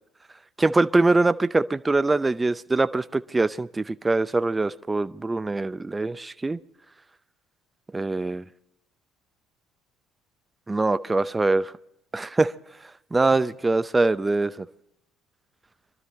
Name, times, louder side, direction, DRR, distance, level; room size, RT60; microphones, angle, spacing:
voice 1, 0.6-6.6 7.9-8.4 10.7-11.7 12.1-12.5 13.1-14.7, right 3 dB, 20° right, 0.6 m, -23 dB
24.0 x 12.5 x 4.2 m
hypercardioid pair, 60°, 0 cm